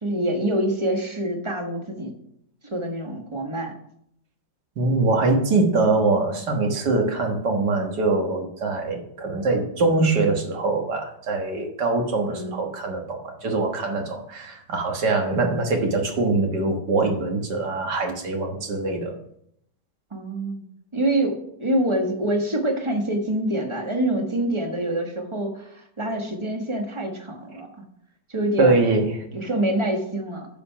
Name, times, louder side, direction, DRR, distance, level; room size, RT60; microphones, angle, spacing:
voice 1, 0.0-2.1 2.6-3.7 12.3-12.6 20.1-20.6 20.9-27.7 28.3-28.8 29.3-30.5, right 1 dB, 20° right, 2 dB, 1.2 m, -26 dB
voice 2, 4.8-19.2 28.6-29.2, right 3 dB, 65° right, 3 dB, 2.0 m, -23 dB
10.5 x 5.2 x 5.7 m, 0.73 s
omnidirectional pair, 2.0 m